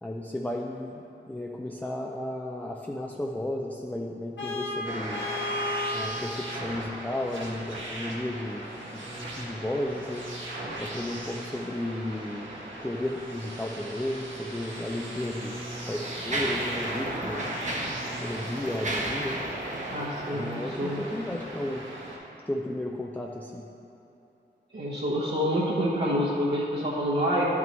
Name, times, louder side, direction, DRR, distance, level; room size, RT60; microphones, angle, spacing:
voice 1, 0.0-5.2 5.9-8.6 8.9-9.1 9.4-10.2 10.8-12.5 12.8-15.6 15.9-17.4 18.2-19.4 20.3-21.9 22.5-23.6, left 1 dB, 10° left, -1 dB, 0.5 m, -33 dB
Vehicle horn car horn honking, 4.4-6.1, left 1 dB, 75° left, 1.6 m, -32 dB
sound 1, 4.8-22.2, right 1 dB, 85° right, 1.4 m, -38 dB
Mechanisms, 14.6-14.8 15.5-21.3, right 1 dB, 40° right, 1.1 m, -34 dB
voice 2, 19.9-21.0 24.7-27.5, equal, 60° right, -9 dB, 1.2 m, -27 dB
10.5 x 6.0 x 3.1 m, 3.0 s
wide cardioid pair, 60°, 19 cm